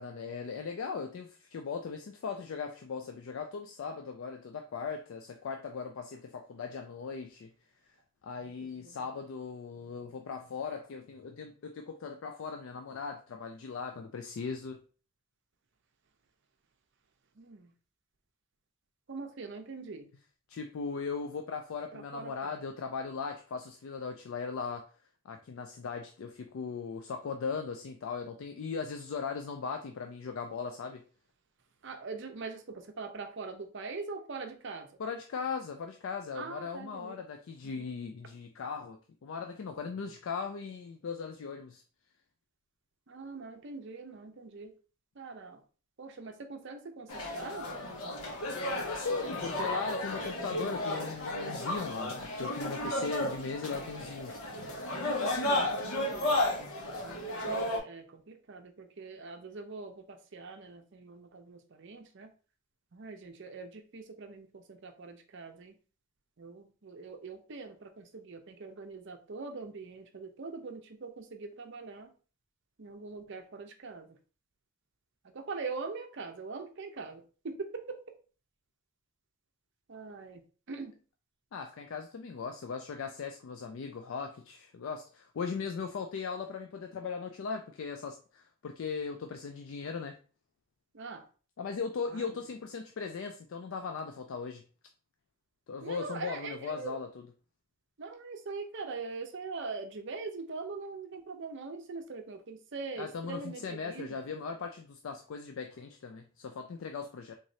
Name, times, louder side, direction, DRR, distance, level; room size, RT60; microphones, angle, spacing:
voice 1, 0.0-7.5 8.2-14.8 20.5-24.9 25.2-31.0 35.0-41.8 48.8-54.3 81.5-90.2 91.6-94.6 95.7-97.1 103.0-107.3, left 5 dB, 60° left, 0.3 m, -38 dB
voice 2, 17.4-17.7 19.1-20.1 21.9-22.5 31.8-35.0 36.3-37.2 37.7-37.9 43.1-44.7 45.1-45.6 46.0-47.7 55.1-56.3 57.0-62.3 62.9-65.8 66.4-72.1 72.8-74.2 75.3-78.0 79.9-80.4 80.7-80.9 90.9-91.3 92.1-92.3 95.8-97.0 98.0-104.2, right 4 dB, 55° right, 0.6 m, -42 dB
sound 1, 47.1-57.8, left 1 dB, 80° left, 1.0 m, -33 dB
3.8 x 3.1 x 2.7 m
head